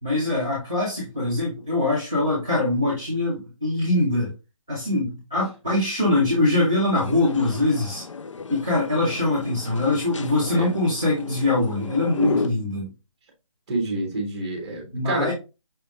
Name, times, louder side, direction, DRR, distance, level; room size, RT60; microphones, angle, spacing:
voice 1, 0.0-4.3 4.7-8.0 8.5-12.9 14.9-15.3, left 2 dB, 5° left, -11 dB, 0.4 m, -23 dB
sound 1, 7.0-12.5, left 4 dB, 60° left, 0.6 m, -34 dB
voice 2, 13.7-15.3, right 2 dB, 10° right, 2 dB, 0.8 m, -28 dB
5.7 x 3.3 x 2.4 m, 0.27 s
hypercardioid pair, 175°, 18 cm